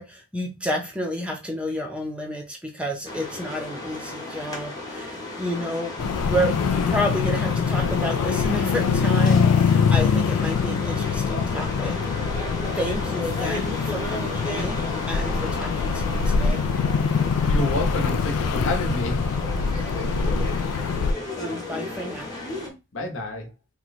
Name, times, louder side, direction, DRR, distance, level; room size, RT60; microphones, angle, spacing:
voice 1, 0.0-5.9 6.2-6.6 6.9-12.0 12.8-16.6 19.8-19.9 21.3-22.3, equal, 5° right, 0.5 m, -30 dB
sound 1, 3.0-22.7, left 2 dB, 20° left, 0.9 m, -34 dB
sound 2, 6.0-21.1, left 5 dB, 90° left, 0.3 m, -24 dB
voice 2, 17.5-19.2 22.9-23.5, left 2 dB, 60° left, 0.9 m, -28 dB
2.9 x 2.2 x 4.0 m
head